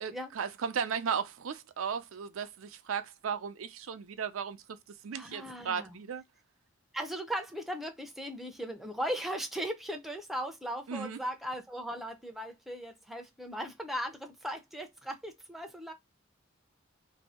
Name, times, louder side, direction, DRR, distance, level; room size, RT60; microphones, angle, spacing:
voice 1, 0.0-4.8 5.0-6.2 10.9-11.2, right 7 dB, 80° right, 0.5 m, -35 dB
voice 2, 5.1-6.0 6.9-15.9, equal, ahead, 0.5 m, -38 dB
2.7 x 2.6 x 4.1 m
head